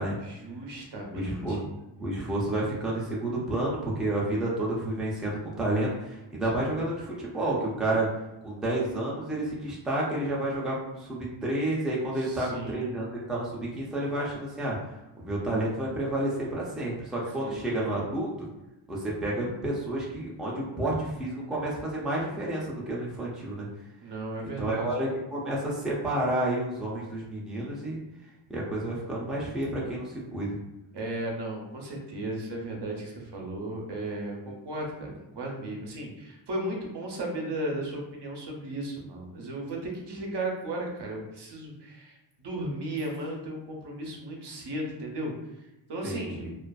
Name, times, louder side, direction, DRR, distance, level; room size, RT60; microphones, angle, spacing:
voice 1, 0.2-1.6 12.2-12.9 17.4-17.8 24.0-24.9 30.9-45.3 45.9-46.4, right 1 dB, 60° right, 0 dB, 0.7 m, -35 dB
voice 2, 1.1-1.7 2.0-8.1 8.4-14.8 15.2-18.5 18.9-23.7 24.6-28.0 28.5-30.6 46.0-46.5, right 1 dB, ahead, -5 dB, 0.5 m, -30 dB
2.4 x 2.4 x 2.2 m, 0.96 s
wide cardioid pair, 105°, 47 cm